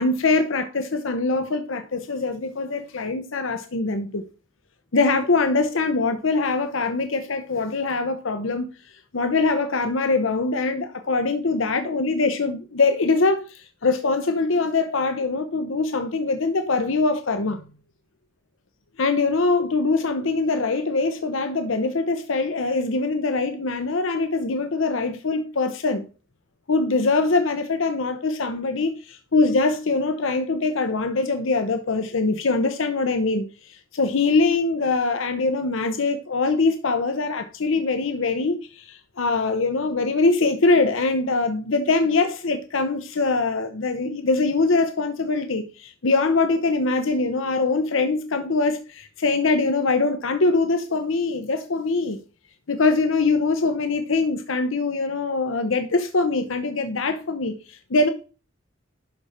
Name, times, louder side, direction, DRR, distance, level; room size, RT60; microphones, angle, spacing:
voice 1, 0.0-4.2 4.9-8.7 9.1-17.6 19.0-26.1 26.7-52.2 52.7-58.1, left 3 dB, 75° left, 0.8 m, -23 dB
11.5 x 4.3 x 5.0 m
head